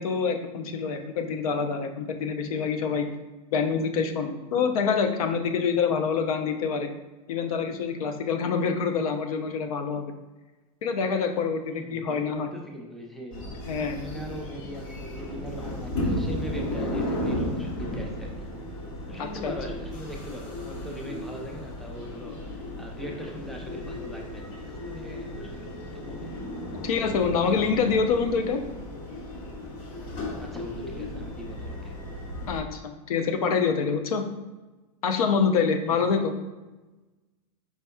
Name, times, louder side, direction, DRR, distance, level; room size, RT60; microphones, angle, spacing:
voice 1, 0.0-3.1 3.5-6.9 7.3-10.1 10.8-12.5 13.6-14.0 19.2-19.5 26.8-28.6 32.5-34.3 35.0-36.3, left 5 dB, 80° left, 6 dB, 0.5 m, -26 dB
voice 2, 11.7-13.5 13.9-18.5 19.1-26.3 27.4-28.0 30.4-31.9 35.9-36.0, equal, ahead, 0 dB, 0.6 m, -41 dB
sound 1, 13.3-32.6, left 1 dB, 55° left, 1.1 m, -34 dB
4.5 x 4.2 x 2.3 m, 1.1 s
hypercardioid pair, 110°, 18 cm